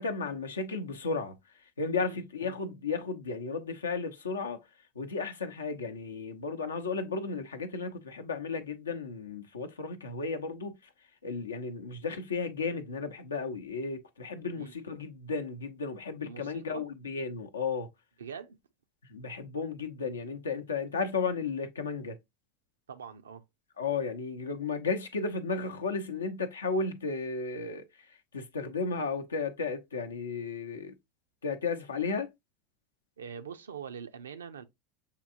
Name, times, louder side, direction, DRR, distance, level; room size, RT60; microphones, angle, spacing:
voice 1, 0.0-1.4 1.8-4.6 5.0-10.7 11.2-17.9 19.1-22.2 23.8-30.9 31.4-32.3, left 4 dB, 85° left, 0.6 m, -34 dB
voice 2, 1.9-2.6 14.6-14.7 16.2-16.9 18.2-18.6 22.9-23.4 33.2-34.6, right 7 dB, 80° right, 0.5 m, -44 dB
6.6 x 2.7 x 2.5 m
hypercardioid pair, 80°, 0 cm